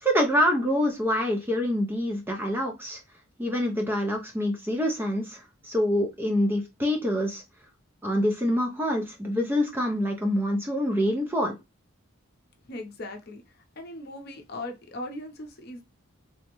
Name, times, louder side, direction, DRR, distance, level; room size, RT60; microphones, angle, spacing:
voice 1, 0.0-3.0 3.4-7.4 8.0-11.5, equal, 10° right, 0.4 m, -26 dB
voice 2, 12.6-15.8, left 1 dB, 45° left, 0.6 m, -39 dB
3.3 x 2.0 x 2.9 m
head